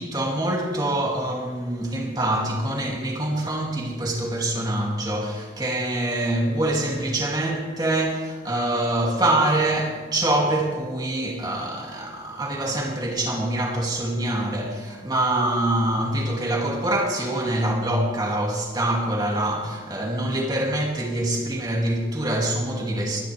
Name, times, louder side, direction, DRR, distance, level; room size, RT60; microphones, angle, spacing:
voice 1, 0.0-23.2, right 1 dB, 25° right, 2.6 m, -25 dB
22.0 x 11.5 x 3.5 m
head